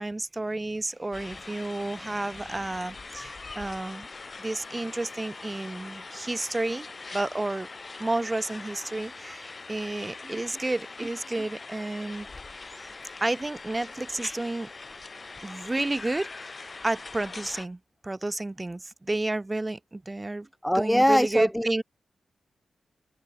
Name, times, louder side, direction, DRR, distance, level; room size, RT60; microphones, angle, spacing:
voice 1, 0.0-4.1 4.4-6.9 7.1-7.7 8.0-12.3 12.8-12.9 13.2-14.7 15.4-16.3 16.8-20.5 20.7-21.8, right 2 dB, 20° right, 2.4 m, -31 dB
sound 1, 1.1-17.7, left 3 dB, 40° left, 1.4 m, -42 dB
voice 2, 20.6-21.7, equal, 5° left, 0.8 m, -22 dB
open air
cardioid pair, 75°, 0 cm